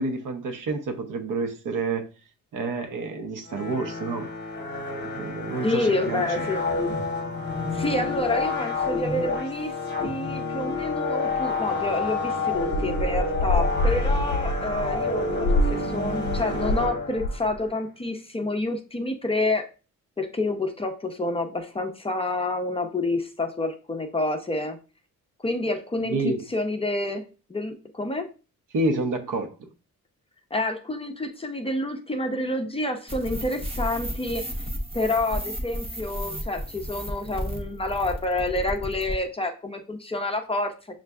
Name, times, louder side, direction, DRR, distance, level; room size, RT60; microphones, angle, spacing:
voice 1, 0.0-2.1 2.5-4.3 5.0-6.3 26.0-26.4 28.7-29.7, right 2 dB, 70° right, 0.8 m, -29 dB
sound 1, 3.5-17.6, left 3 dB, 30° left, 0.9 m, -29 dB
voice 2, 5.6-6.6 7.7-19.6 20.2-24.8 25.4-27.2 27.5-28.3 30.5-34.5 34.9-40.7, left 2 dB, 15° left, 0.5 m, -28 dB
sound 2, 12.5-16.9 17.2-17.6, left 2 dB, 65° left, 0.5 m, -26 dB
sound 3, 33.1-39.2, equal, 15° right, 0.8 m, -33 dB
6.3 x 2.5 x 2.3 m
cardioid pair, 110°, 33 cm